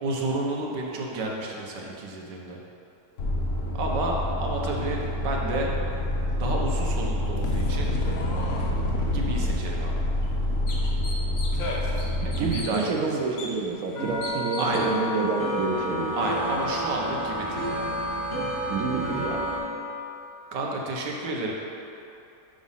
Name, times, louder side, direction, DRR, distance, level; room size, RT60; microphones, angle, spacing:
voice 1, 0.0-2.6 3.7-5.7 6.4-7.9 9.1-10.0 12.2-13.2 14.6-14.9 16.1-17.9 20.5-21.5, right 2 dB, 85° right, -1 dB, 1.6 m, -31 dB
sound 1, 3.2-12.5, left 1 dB, 55° left, 1.2 m, -27 dB
sound 2, 8.5-11.8 12.1-19.6, equal, 35° left, 1.7 m, -31 dB
sound 3, 9.6-9.7 10.2-10.3 10.7-11.7 12.0-12.7 13.4-13.5 14.2-14.9, left 2 dB, 80° left, 1.7 m, -38 dB
voice 2, 12.4-16.1 18.7-19.4, right 4 dB, 65° right, 1 dB, 1.1 m, -28 dB
6.2 x 5.1 x 5.6 m, 2.8 s
omnidirectional pair, 1.8 m